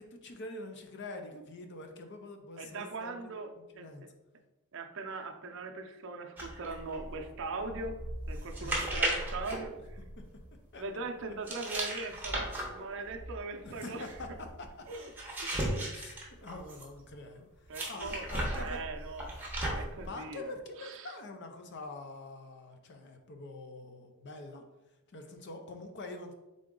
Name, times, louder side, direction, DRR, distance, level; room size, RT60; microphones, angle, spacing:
voice 1, 0.0-3.3 3.7-4.1 8.6-8.8 10.2-10.3 10.7-10.8 13.6-14.7 15.9-16.2 16.4-17.5 17.9-18.8 20.1-24.6 25.1-26.3, left 2 dB, 50° left, 5 dB, 0.6 m, -45 dB
voice 2, 2.6-3.5 3.8-4.1 4.7-8.0 8.3-10.0 10.8-14.1 14.9-15.1 15.4-16.0 17.7-18.2 18.5-19.3 19.7-21.2, right 3 dB, 60° right, 5 dB, 0.5 m, -41 dB
sound 1, 6.4-10.5 11.5-17.0 17.7-20.1, right 1 dB, 10° right, 0.8 m, -36 dB
3.8 x 3.8 x 3.7 m, 1.0 s
head